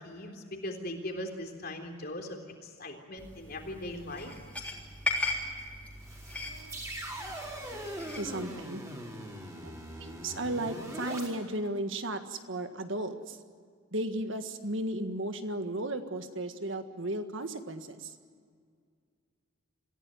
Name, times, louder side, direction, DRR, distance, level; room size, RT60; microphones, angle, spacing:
voice 1, 0.0-4.3, left 1 dB, 45° left, 3 dB, 3.7 m, -40 dB
sound 1, 3.2-8.4, left 2 dB, 5° left, 3.6 m, -38 dB
sound 2, 6.0-11.3, right 1 dB, 15° right, 4.5 m, -41 dB
voice 2, 6.4-6.8 7.1-8.8 9.6-9.7 10.0-13.4 13.9-18.1, right 1 dB, 60° right, 7 dB, 1.7 m, -35 dB
26.5 x 16.0 x 9.2 m, 2.1 s
head